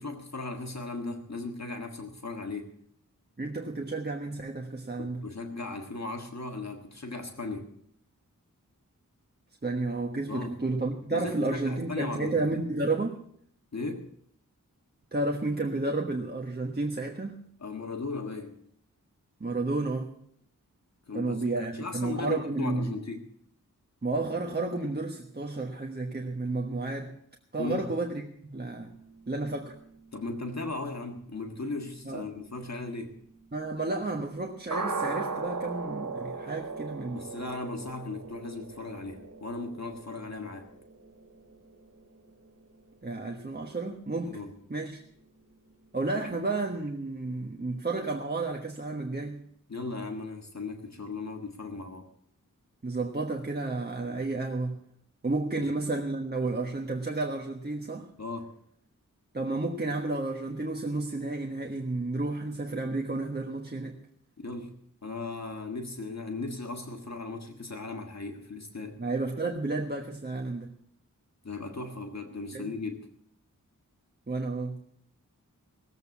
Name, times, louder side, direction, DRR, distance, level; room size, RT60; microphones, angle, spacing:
voice 1, 0.0-2.7 5.0-7.7 10.3-10.6 11.1-12.4 13.7-14.1 17.6-18.6 21.1-21.4 21.7-23.3 27.6-27.9 30.1-33.2 37.1-40.7 44.3-44.5 49.7-52.1 55.5-55.6 58.2-58.6 64.4-64.7 65.0-69.0 71.4-73.1, left 3 dB, 55° left, 1.7 m, -37 dB
voice 2, 3.4-5.3 9.6-13.2 15.1-17.4 19.4-20.1 21.1-22.9 24.0-27.1 27.5-28.9 29.3-29.8 32.0-32.3 33.5-37.3 43.0-44.4 44.7-45.0 45.9-49.4 52.8-54.8 55.2-58.1 59.3-64.0 69.0-70.7 72.5-72.7 74.3-74.8, right 2 dB, 30° right, 1.3 m, -31 dB
sound 1, 28.8-43.6 43.9-44.0 44.3-44.4 44.8-44.9 45.3-45.4 45.5-45.6, right 4 dB, 60° right, 2.3 m, -40 dB
18.5 x 8.0 x 7.2 m
wide cardioid pair, 70°, 33 cm